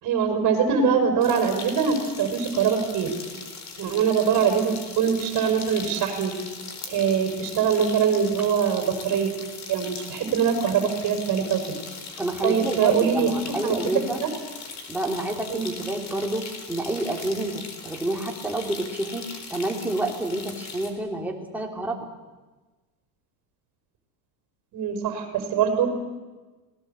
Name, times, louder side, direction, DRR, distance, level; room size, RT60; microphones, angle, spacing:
voice 1, 0.0-3.1 3.8-6.3 6.9-9.3 9.7-11.8 12.4-13.3 13.6-13.8 14.2-14.3 15.5-15.7 24.7-25.9, right 7 dB, 40° right, 3 dB, 5.0 m, -23 dB
sound 1, 1.2-20.9, left 4 dB, 35° left, 4.0 m, -39 dB
voice 2, 12.2-14.2 14.9-22.1, right 1 dB, 5° right, 0 dB, 3.4 m, -29 dB
26.0 x 19.0 x 8.2 m, 1.2 s
supercardioid pair, 140°, 49 cm